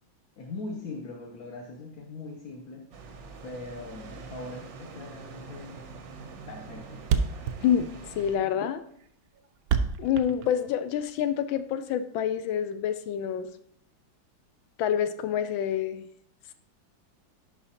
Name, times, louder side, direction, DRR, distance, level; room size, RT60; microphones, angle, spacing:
voice 1, 0.4-2.9 3.4-5.7 6.5-7.1, left 3 dB, 60° left, 1 dB, 1.1 m, -41 dB
sound 1, 2.9-8.4, right 4 dB, 55° right, 0.8 m, -44 dB
Thump thud, 5.7-5.9 6.2-6.3 6.5-6.6 6.8-6.9 7.0-11.1, right 6 dB, 85° right, 0.8 m, -28 dB
voice 2, 8.1-8.8 10.0-13.5 14.8-16.0, left 9 dB, 80° left, 11 dB, 1.3 m, -27 dB
11.0 x 5.0 x 2.8 m, 0.67 s
omnidirectional pair, 2.1 m